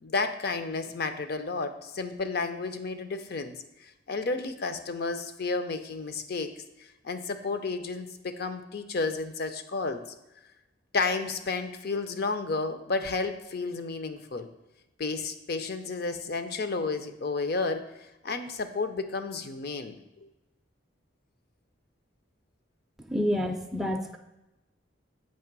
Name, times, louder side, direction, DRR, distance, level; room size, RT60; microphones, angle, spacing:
voice 1, 0.0-6.5 6.8-10.0 10.9-14.5 15.0-17.8 18.2-20.0, left 3 dB, 55° left, 9 dB, 0.6 m, -32 dB
voice 2, 23.1-24.2, equal, ahead, 1 dB, 0.4 m, -28 dB
7.7 x 3.3 x 5.9 m, 0.95 s
head